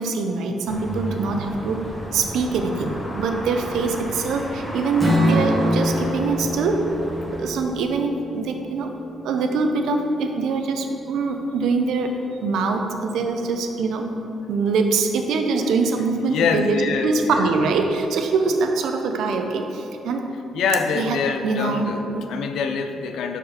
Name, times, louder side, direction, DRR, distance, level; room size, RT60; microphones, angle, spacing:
voice 1, 0.0-1.9 2.1-6.8 7.4-8.9 9.2-12.1 12.4-14.1 14.5-20.2 21.0-21.2 21.4-22.2, right 4 dB, 80° right, 4 dB, 0.6 m, -23 dB
sound 1, 0.7-7.5, left 1 dB, 10° left, 1.2 m, -33 dB
Strum, 5.0-9.2, equal, 15° right, 1.5 m, -24 dB
voice 2, 16.2-17.5 20.5-22.0 22.3-23.4, left 5 dB, 80° left, 7 dB, 0.5 m, -25 dB
6.1 x 4.7 x 4.9 m, 2.8 s
cardioid pair, 90°, 0 cm